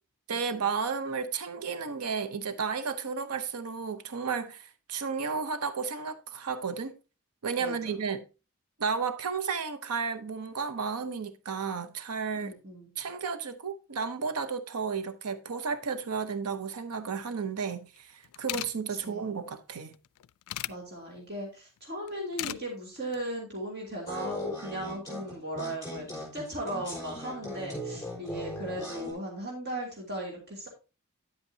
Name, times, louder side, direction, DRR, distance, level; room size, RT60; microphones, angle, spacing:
voice 1, 0.3-7.0 7.4-8.2 8.8-12.5 13.0-19.9, right 5 dB, 90° right, 0.7 m, -33 dB
voice 2, 7.6-7.9 12.3-12.9 19.0-19.3 20.7-30.7, right 1 dB, 45° right, 2.7 m, -37 dB
sound 1, 18.0-18.1 18.2-18.7 19.9-20.7 22.1-22.6 23.0-23.2, left 16 dB, 85° left, 0.3 m, -35 dB
sound 2, 24.1-29.1, left 1 dB, 15° left, 5.0 m, -39 dB
9.8 x 8.1 x 2.7 m
head